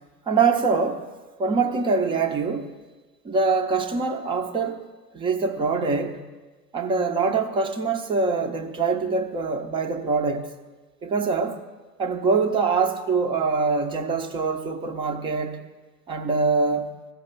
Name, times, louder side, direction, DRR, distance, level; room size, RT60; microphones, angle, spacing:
voice 1, 0.3-1.1 1.4-2.7 3.2-4.9 5.1-6.2 6.7-10.5 11.0-11.6 12.0-15.6 16.1-16.9, right 4 dB, 10° right, 0.3 m, -24 dB
14.5 x 5.2 x 7.5 m
hypercardioid pair, 105°, 47 cm